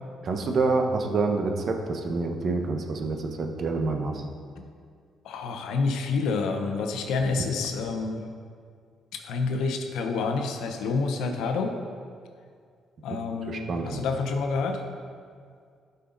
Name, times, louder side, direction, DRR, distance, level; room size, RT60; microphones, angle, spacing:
voice 1, 0.2-4.2 13.5-14.0, right 3 dB, 55° right, 4 dB, 1.0 m, -27 dB
voice 2, 5.2-8.2 9.1-11.8 13.0-14.8, left 4 dB, 85° left, 4 dB, 0.9 m, -28 dB
12.0 x 5.6 x 4.0 m, 2.1 s
cardioid pair, 90°, 0 cm